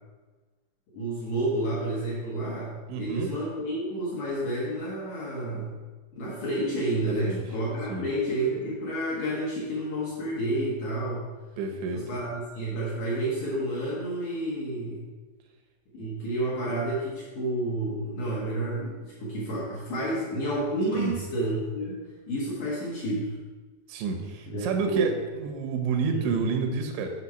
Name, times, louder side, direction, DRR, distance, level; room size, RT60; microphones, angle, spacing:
voice 1, 0.9-5.8 6.2-11.3 11.9-15.1 15.9-23.4 24.5-25.1 26.1-26.3, right 1 dB, 65° left, -7 dB, 2.0 m, -30 dB
voice 2, 2.9-3.3 7.1-7.4 7.9-8.1 11.6-12.0 20.9-21.1 23.9-27.1, right 5 dB, 85° right, 5 dB, 3.2 m, -29 dB
7.4 x 4.5 x 5.5 m, 1.3 s
omnidirectional pair, 5.1 m